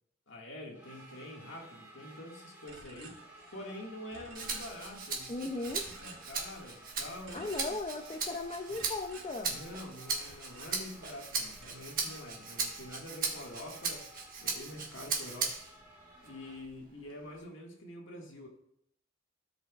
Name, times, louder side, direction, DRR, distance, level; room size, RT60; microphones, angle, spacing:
voice 1, 0.3-3.2 3.5-7.5 8.7-8.8 9.5-14.1 14.4-15.6 16.2-18.5, left 1 dB, 75° left, -1 dB, 1.9 m, -46 dB
sound 1, 0.7-16.6, right 1 dB, 10° right, 2.7 m, -56 dB
sound 2, 2.7-3.8 4.1-5.2 5.6-6.8 7.2-8.4 8.7-11.3 11.6-12.8, right 3 dB, 90° right, 3.2 m, -53 dB
Rattle (instrument), 4.3-15.8 16.2-17.4, right 5 dB, 50° right, 1.4 m, -38 dB
voice 2, 5.3-5.8 7.3-9.6, left 3 dB, 30° left, 4 dB, 0.5 m, -37 dB
15.5 x 5.3 x 2.4 m, 0.72 s
head